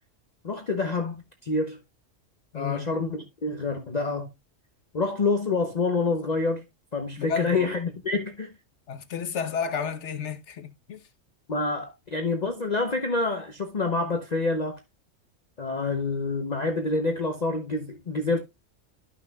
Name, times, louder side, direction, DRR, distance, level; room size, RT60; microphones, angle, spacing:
voice 1, 0.4-1.8 2.5-4.3 4.9-6.6 6.9-8.6 11.5-14.8 15.6-18.4, left 3 dB, 35° left, 0.9 m, -27 dB
voice 2, 7.2-7.7 8.9-11.0, left 7 dB, 65° left, 1.2 m, -31 dB
12.5 x 5.9 x 2.3 m
omnidirectional pair, 1.3 m